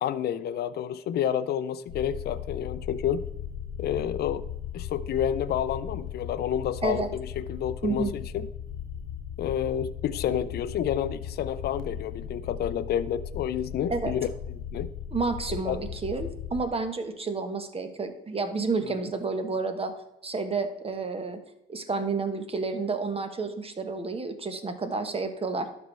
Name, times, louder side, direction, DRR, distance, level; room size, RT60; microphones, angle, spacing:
voice 1, 0.0-3.2 3.8-4.4 4.7-8.5 9.4-14.3 14.7-14.9 15.7-15.8 18.8-19.1, left 9 dB, 60° left, 14 dB, 0.5 m, -29 dB
sound 1, 1.9-16.6, left 8 dB, 85° left, 0.8 m, -37 dB
voice 2, 15.1-19.9 20.2-21.4 21.7-25.7, right 4 dB, 30° right, 7 dB, 1.3 m, -30 dB
12.0 x 4.5 x 3.3 m, 0.90 s
supercardioid pair, 55°, 19 cm